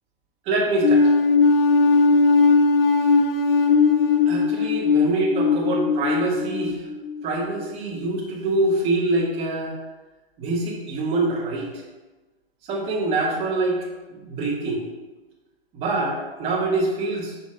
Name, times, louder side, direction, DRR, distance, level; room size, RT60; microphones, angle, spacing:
voice 1, 0.5-1.1 4.3-6.8 7.2-9.7 10.4-11.7 12.7-13.8 14.1-14.8 15.7-17.4, right 2 dB, 20° right, -4 dB, 1.3 m, -25 dB
sound 1, 0.8-7.2, left 4 dB, 70° left, 0.7 m, -18 dB
6.3 x 5.2 x 4.3 m, 1.2 s
hypercardioid pair, 160°, 30 cm